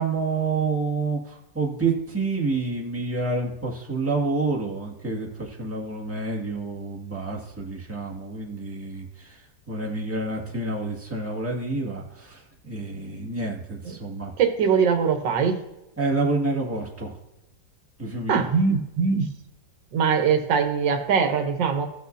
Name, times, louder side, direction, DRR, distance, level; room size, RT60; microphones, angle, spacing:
voice 1, 0.0-9.4 9.7-14.3 16.0-17.1 18.0-18.5, right 3 dB, 5° right, -4 dB, 1.8 m, -28 dB
voice 2, 14.4-15.6 18.3-19.3 19.9-21.9, right 6 dB, 85° right, 5 dB, 1.7 m, -22 dB
17.0 x 6.2 x 2.7 m, 0.94 s
omnidirectional pair, 2.0 m